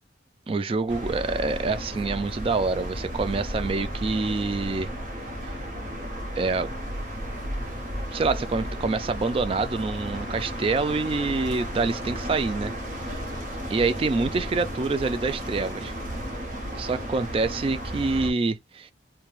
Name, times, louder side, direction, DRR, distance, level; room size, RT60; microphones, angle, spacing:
voice 1, 0.5-4.9 6.4-6.7 8.1-12.7 13.7-15.9 16.7-18.9, right 3 dB, 30° right, 0.3 m, -26 dB
sound 1, 0.9-18.3, equal, 50° right, 0.8 m, -33 dB
3.1 x 2.2 x 2.3 m
head